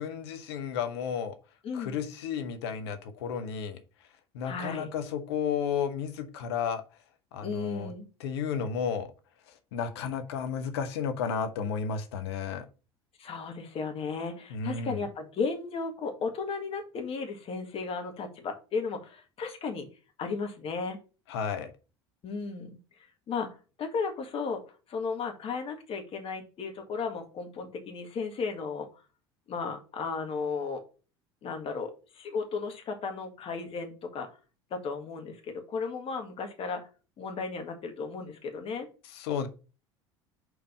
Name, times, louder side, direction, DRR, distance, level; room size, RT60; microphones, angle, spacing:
voice 1, 0.0-1.4 1.7-3.8 4.3-6.8 7.3-7.9 8.2-9.1 9.5-12.7 14.5-15.0 21.3-21.7 39.1-39.5, left 7 dB, 70° left, 9 dB, 1.0 m, -32 dB
voice 2, 4.4-4.9 7.4-8.1 13.2-19.9 20.2-21.0 22.2-22.8 23.3-23.5 23.8-24.6 24.9-28.9 29.5-30.8 31.4-34.3 34.7-36.8 37.2-38.9, left 4 dB, 45° left, 4 dB, 1.8 m, -34 dB
5.1 x 4.7 x 5.1 m, 0.33 s
hypercardioid pair, 70°, 14 cm